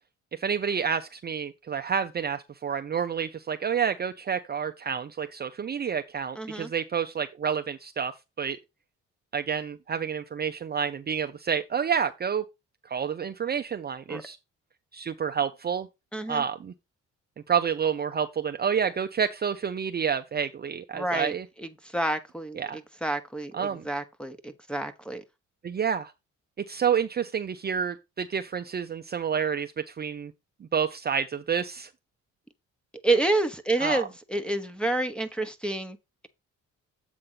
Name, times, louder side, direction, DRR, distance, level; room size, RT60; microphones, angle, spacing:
voice 1, 0.3-8.1 8.4-8.6 9.3-12.4 12.8-14.4 14.9-15.9 16.3-16.7 17.5-21.5 22.5-22.8 23.5-23.9 25.6-26.1 26.7-30.3 30.7-31.9 33.8-34.1, right 7 dB, 35° right, 0.6 m, -29 dB
voice 2, 6.4-6.7 14.1-14.2 16.1-16.4 20.9-21.3 21.6-25.2 33.0-36.0, right 2 dB, 5° left, 1.2 m, -29 dB
7.9 x 3.6 x 5.7 m
cardioid pair, 90°, 30 cm